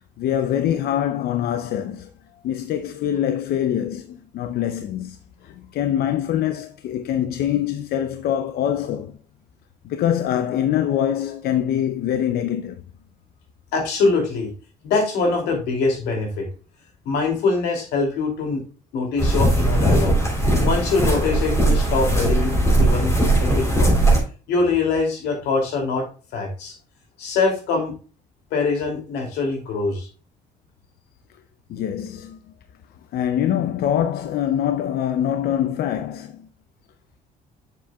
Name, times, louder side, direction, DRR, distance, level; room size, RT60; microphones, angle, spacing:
voice 1, 0.2-2.1 2.4-5.2 5.4-9.2 9.8-12.8 31.7-32.4 33.1-36.5, left 10 dB, 65° left, 0.6 m, -24 dB
voice 2, 13.7-14.5 14.8-16.5 17.0-18.6 18.9-20.1 20.6-23.9 24.5-26.1 26.3-26.8 27.2-27.9 28.5-30.1, left 4 dB, 80° left, 2.7 m, -23 dB
sound 1, 19.2-24.2, right 1 dB, 15° left, 3.4 m, -19 dB
7.5 x 7.1 x 2.3 m
cardioid pair, 110°, 17 cm